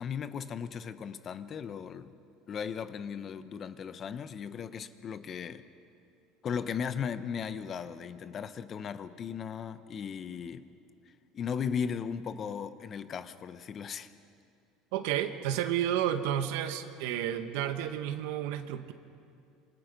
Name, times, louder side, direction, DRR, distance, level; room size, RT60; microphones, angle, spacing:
voice 1, 0.0-2.1 2.5-5.6 6.4-10.7 11.3-14.1, left 7 dB, 35° left, 0.9 m, -36 dB
voice 2, 14.9-18.9, right 10 dB, 75° right, 1.4 m, -31 dB
27.5 x 25.0 x 5.3 m
cardioid pair, 135°, 0 cm